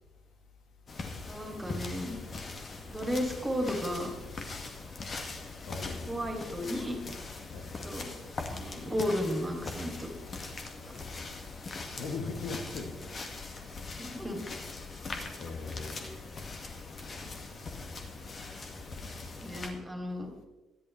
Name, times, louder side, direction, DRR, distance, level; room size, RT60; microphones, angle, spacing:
sound 1, 0.9-19.7, left 3 dB, 40° left, 2.0 m, -41 dB
voice 1, 1.3-2.2 2.9-4.1 6.1-7.0 7.8-8.1 8.5-10.1 10.9-11.0 14.0-14.4 17.2-17.3 19.4-20.3, equal, 15° right, 3 dB, 3.0 m, -34 dB
voice 2, 5.6-6.3 7.5-7.9 11.8-13.0 15.4-16.1, left 4 dB, 55° left, 4 dB, 1.7 m, -39 dB
19.5 x 13.5 x 3.4 m, 1.1 s
figure-of-eight pair, 45°, 0 cm